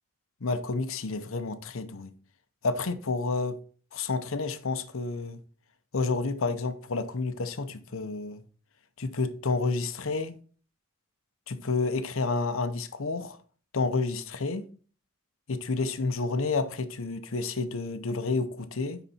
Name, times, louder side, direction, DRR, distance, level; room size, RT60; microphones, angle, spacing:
voice 1, 0.4-2.1 2.6-3.6 3.9-5.4 5.9-8.4 9.0-10.4 11.5-13.4 13.7-14.7 15.5-19.0, left 3 dB, 70° left, 0.7 m, -30 dB
9.8 x 4.1 x 4.2 m
head